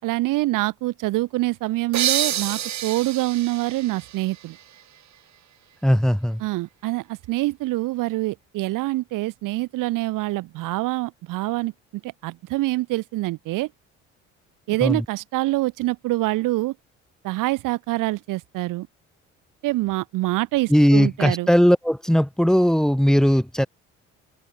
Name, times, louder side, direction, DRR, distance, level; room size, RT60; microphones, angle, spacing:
voice 1, 0.0-4.6 6.4-11.7 12.0-13.7 14.7-16.7 17.2-18.9 19.6-21.5, right 18 dB, 75° right, 4.8 m, -25 dB
sound 1, 1.9-5.4, right 11 dB, 60° right, 4.6 m, -28 dB
voice 2, 5.8-6.4 14.8-15.0 20.7-23.7, equal, ahead, 5.2 m, -18 dB
hypercardioid pair, 65°, 32 cm